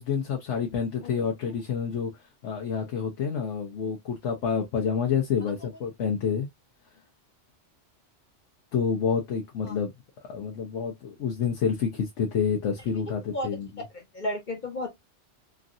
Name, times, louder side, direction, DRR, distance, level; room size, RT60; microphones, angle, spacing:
voice 1, 0.0-2.1 2.4-6.5 8.7-9.9 10.3-13.7, left 6 dB, 75° left, 1.0 m, -28 dB
voice 2, 13.9-14.9, left 1 dB, 45° left, 0.8 m, -32 dB
3.1 x 2.6 x 2.4 m
omnidirectional pair, 1.2 m